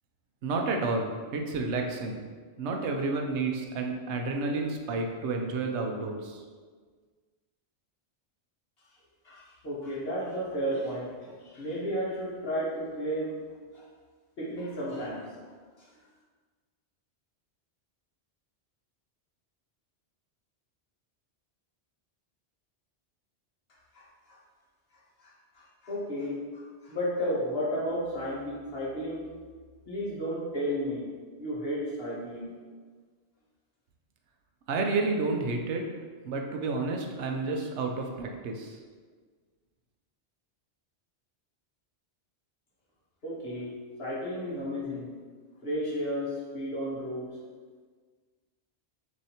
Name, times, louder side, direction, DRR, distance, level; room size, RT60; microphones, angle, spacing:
voice 1, 0.4-2.2 2.6-6.4 34.7-35.8 36.2-38.8, right 3 dB, 90° right, 2 dB, 0.9 m, -30 dB
voice 2, 9.2-13.4 13.7-13.9 14.4-15.4 23.9-24.4 25.2-29.3 29.9-31.1 31.4-32.5 43.2-45.1 45.6-47.4, equal, 60° left, -8 dB, 1.5 m, -33 dB
6.3 x 2.7 x 2.9 m, 1.5 s
omnidirectional pair, 1.1 m